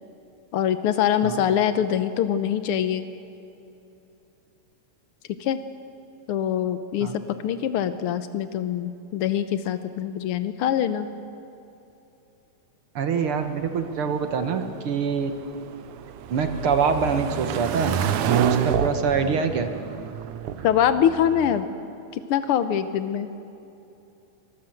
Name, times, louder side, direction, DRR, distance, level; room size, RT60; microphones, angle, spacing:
voice 1, 0.5-3.0 5.4-5.6 6.3-7.1 7.4-11.1 20.6-21.7 22.1-23.3, left 9 dB, 90° left, 11 dB, 1.2 m, -24 dB
voice 2, 12.9-15.3 16.3-17.9 18.3-19.7, right 5 dB, 55° right, 7 dB, 1.8 m, -25 dB
sound 1, 13.3-21.6, right 8 dB, 75° right, 2.3 m, -29 dB
25.0 x 20.0 x 7.8 m, 2.9 s
omnidirectional pair, 3.6 m